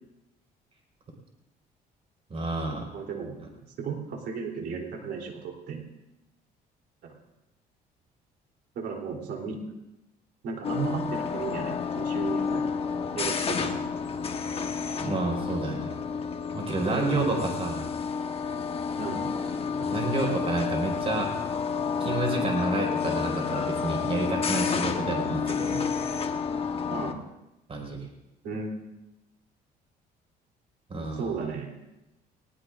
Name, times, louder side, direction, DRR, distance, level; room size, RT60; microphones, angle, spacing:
voice 1, 2.3-2.8 15.0-15.9 16.5-17.8 19.8-21.3 22.0-25.8 27.7-28.0 30.9-31.3, right 2 dB, 35° right, 1 dB, 5.0 m, -29 dB
voice 2, 2.9-3.4 3.8-5.8 7.0-7.1 8.8-9.6 10.4-12.6 13.2-13.8 16.9-17.5 19.0-19.3 26.9-27.2 28.4-28.7 31.2-31.8, right 5 dB, 70° right, 1 dB, 3.4 m, -35 dB
sound 1, 10.6-27.1, left 6 dB, 35° left, 1.2 m, -30 dB
20.5 x 19.0 x 2.6 m, 0.95 s
cardioid pair, 110°, 17 cm